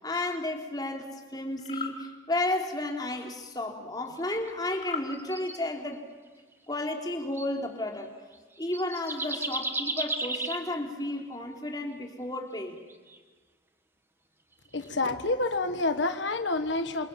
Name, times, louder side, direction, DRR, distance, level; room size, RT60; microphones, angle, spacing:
voice 1, 0.0-6.0 6.7-8.1 8.6-12.8, left 2 dB, 20° left, 1 dB, 3.7 m, -32 dB
sound 1, 1.6-2.0 4.8-5.1, left 5 dB, 35° left, 3.2 m, -36 dB
sound 2, 4.3-4.5 5.1-5.6 6.5-6.8 7.3-7.5 8.3-8.4 8.7-10.7 12.9-13.2 14.6-14.9, right 2 dB, 10° right, 1.6 m, -34 dB
voice 2, 14.7-17.1, left 2 dB, 75° left, 8 dB, 1.4 m, -28 dB
29.0 x 26.5 x 7.6 m, 1.3 s
head